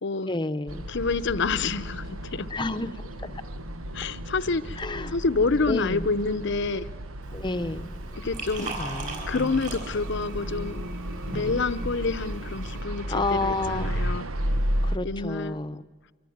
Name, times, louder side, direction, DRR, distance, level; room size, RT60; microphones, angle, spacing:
voice 1, 0.3-0.9 2.5-2.9 3.2-3.3 4.8-5.1 5.7-6.1 7.3-7.9 8.6-9.2 13.1-13.9 14.8-15.8, left 2 dB, 20° left, 10 dB, 0.8 m, -30 dB
sound 1, 0.7-15.0, equal, 85° right, 1.1 m, -33 dB
voice 2, 0.9-2.6 3.9-4.8 5.1-6.9 8.2-8.7 9.3-10.8 11.3-14.3 15.0-15.6, left 4 dB, 60° left, 14 dB, 0.8 m, -28 dB
Liquid, 7.2-12.8, right 1 dB, 35° right, 7.9 m, -38 dB
sound 2, 8.1-14.1, right 3 dB, 55° right, 4.0 m, -50 dB
25.5 x 24.5 x 9.4 m, 1.4 s
head